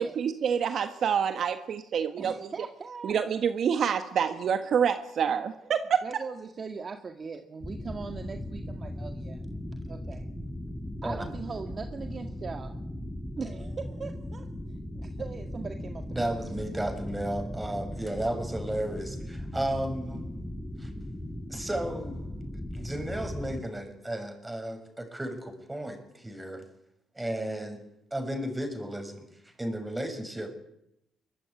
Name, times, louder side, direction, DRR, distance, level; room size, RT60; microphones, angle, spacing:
voice 1, 0.0-2.5 3.0-6.0, right 7 dB, 60° right, 8 dB, 1.5 m, -27 dB
voice 2, 2.2-3.2 4.3-4.4 6.0-9.4 9.8-10.3 11.0-12.7 13.4-14.5 14.9-16.3, right 5 dB, 40° right, 6 dB, 1.9 m, -40 dB
sound 1, 7.6-23.6, left 1 dB, 5° left, 4.1 m, -38 dB
voice 3, 16.1-20.3 20.8-20.9 21.5-22.2 22.7-26.7 27.1-27.8 28.1-29.3 29.6-30.6, right 1 dB, 10° right, 6 dB, 6.7 m, -33 dB
23.0 x 20.5 x 9.6 m, 0.80 s
cardioid pair, 90°, 0 cm